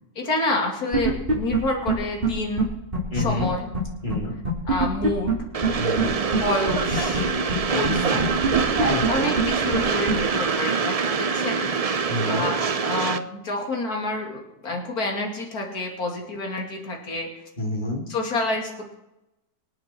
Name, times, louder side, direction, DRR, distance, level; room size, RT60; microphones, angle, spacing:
voice 1, 0.1-2.7 3.1-3.7 4.7-5.4 6.4-7.3 7.7-8.4 9.1-11.7 12.3-17.4 18.1-18.9, left 2 dB, 65° left, 1 dB, 3.2 m, -28 dB
sound 1, 0.9-1.6 1.9-2.0 2.2-2.3 2.6-2.7 2.9-3.5 3.7-3.8 4.1-4.2 4.4-5.3 5.6-5.7 6.0-6.1 6.3-6.4 6.7-7.2 7.5-7.6 7.8-7.9 8.2-9.1 9.4-9.5 9.7-9.8 10.1-10.2, right 3 dB, 30° right, 3.9 m, -23 dB
voice 2, 3.1-3.5 4.0-4.4 5.8-6.2 7.7-8.2 8.8-9.7 12.1-12.5 17.6-18.1, left 1 dB, 30° left, -1 dB, 3.4 m, -29 dB
Train, 5.5-13.2, right 5 dB, 75° right, 0.3 m, -24 dB
25.5 x 8.8 x 4.5 m, 0.92 s
omnidirectional pair, 1.7 m